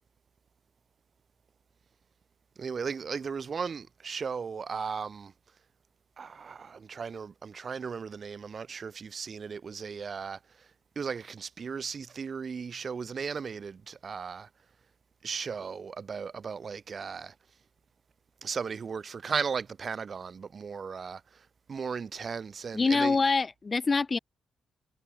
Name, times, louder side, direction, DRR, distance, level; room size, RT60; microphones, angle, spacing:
voice 1, 2.6-5.3 6.2-10.7 11.0-14.5 15.2-17.3 18.4-23.2, right 6 dB, 50° right, 0.4 m, -36 dB
voice 2, 22.7-24.2, left 4 dB, 40° left, 0.6 m, -25 dB
hypercardioid pair, 45°, 0 cm